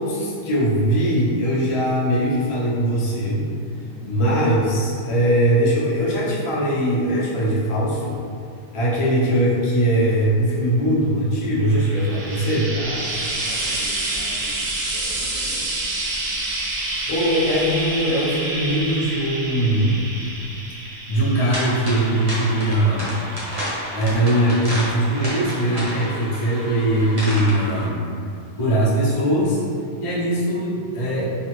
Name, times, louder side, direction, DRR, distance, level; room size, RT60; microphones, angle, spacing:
voice 1, 0.0-3.5 4.0-8.2 8.7-12.7 17.1-20.1 21.1-23.2 23.9-28.1 28.6-29.6 30.0-31.3, right 1 dB, 45° left, -7 dB, 0.4 m, -21 dB
voice 2, 3.7-4.1 12.5-15.8 16.3-16.4, left 1 dB, 90° left, -3 dB, 1.1 m, -41 dB
Frying (food), 11.6-25.0 26.0-26.1, right 2 dB, 70° right, 1.0 m, -29 dB
sound 1, 21.5-27.9, equal, 35° right, 0.8 m, -31 dB
3.4 x 2.2 x 2.9 m, 2.4 s
omnidirectional pair, 1.4 m